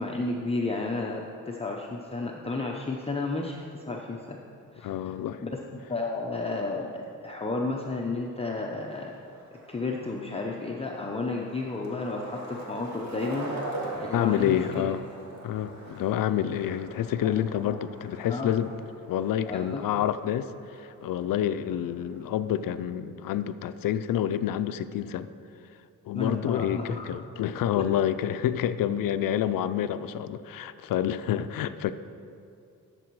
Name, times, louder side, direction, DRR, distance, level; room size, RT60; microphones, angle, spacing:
voice 1, 0.0-4.4 4.7-4.9 5.4-5.6 5.9-9.1 9.5-13.5 14.0-14.9 17.2-17.3 17.6-17.8 18.3-18.5 19.5-19.8 26.1-27.1 27.7-27.8 31.4-31.5, left 3 dB, 20° left, -1 dB, 0.7 m, -32 dB
voice 2, 4.8-5.4 14.1-15.0 15.4-18.7 19.1-20.5 20.8-25.3 26.1-31.9, left 10 dB, 80° left, 12 dB, 0.5 m, -28 dB
Skateboard, 7.7-22.9, right 2 dB, 55° right, 1.8 m, -43 dB
12.5 x 6.9 x 4.7 m, 2.5 s
cardioid pair, 105°, 33 cm